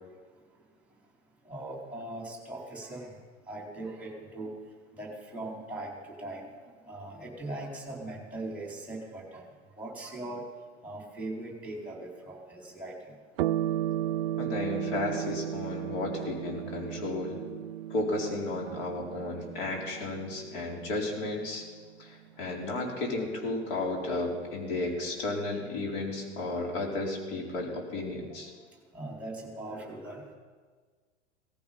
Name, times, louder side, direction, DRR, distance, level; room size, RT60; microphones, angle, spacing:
voice 1, 1.5-3.1 3.5-4.5 5.0-9.4 9.8-10.4 10.8-13.1 13.5-13.6 14.9-15.0 16.5-17.0 18.7-18.8 28.9-30.3, right 2 dB, 5° right, -1 dB, 4.5 m, -40 dB
sound 1, 13.4-22.2, right 12 dB, 55° right, 0.4 m, -35 dB
voice 2, 14.4-17.4 17.9-21.7 22.0-28.5, left 2 dB, 50° left, 0 dB, 4.3 m, -33 dB
18.0 x 14.5 x 5.6 m, 1.5 s
figure-of-eight pair, 90°, 35 cm